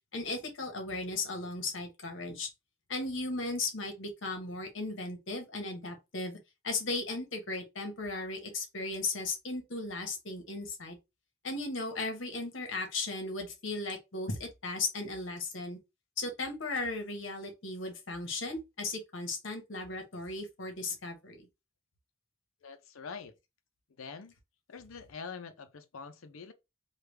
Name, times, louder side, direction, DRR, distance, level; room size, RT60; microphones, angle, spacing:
voice 1, 0.1-2.5 2.9-6.4 6.6-11.0 11.4-15.8 16.2-21.5, left 3 dB, 65° left, 1.1 m, -36 dB
voice 2, 22.6-23.3 24.0-24.3 24.7-26.5, left 5 dB, 85° left, 0.6 m, -45 dB
3.3 x 2.3 x 3.2 m
head